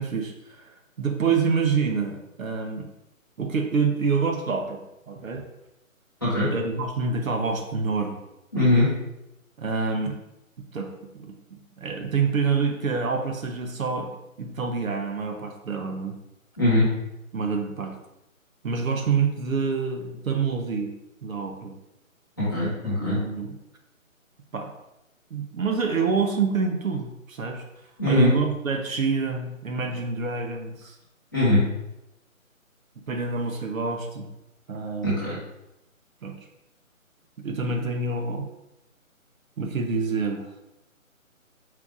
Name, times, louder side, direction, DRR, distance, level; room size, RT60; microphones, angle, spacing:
voice 1, 0.0-2.9 3.4-5.4 6.5-8.2 8.6-8.7 9.6-10.1 10.7-14.1 14.4-16.1 17.3-17.9 18.6-20.9 21.2-21.7 22.8-23.5 24.5-24.7 25.3-27.6 28.0-30.9 33.1-34.3 34.7-35.4 36.2-36.4 37.4-38.5 39.6-40.5, right 5 dB, 70° right, 4 dB, 0.8 m, -27 dB
voice 2, 8.5-8.9 16.6-16.9 22.4-23.2 28.0-28.3 31.3-31.6 35.0-35.4, left 1 dB, 15° left, -12 dB, 1.0 m, -21 dB
4.4 x 2.4 x 4.0 m, 0.89 s
hypercardioid pair, 175°, 42 cm